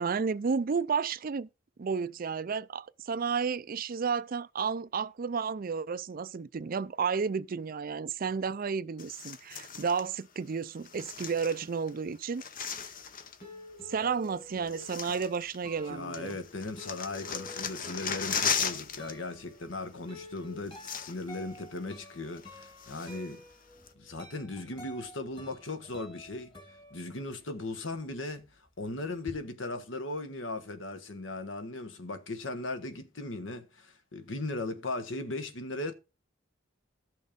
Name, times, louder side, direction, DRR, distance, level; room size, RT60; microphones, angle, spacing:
voice 1, 0.0-1.5 1.8-12.4 13.9-16.4, right 5 dB, 45° right, 0.4 m, -32 dB
sound 1, 9.0-10.1 10.8-11.9 12.2-13.4 14.2-14.3 14.7-15.8 16.1-19.1 19.4-19.6 20.4-20.5 20.7-21.4 21.8-21.9 22.4-23.3 23.9-24.0, left 7 dB, 45° left, 0.8 m, -36 dB
sound 2, 12.9-27.6 27.9-29.4, left 1 dB, 25° left, 2.1 m, -50 dB
voice 2, 15.9-23.4 24.0-26.5 26.9-28.5 28.8-35.9, left 2 dB, 65° left, 1.3 m, -38 dB
13.0 x 6.4 x 5.1 m
head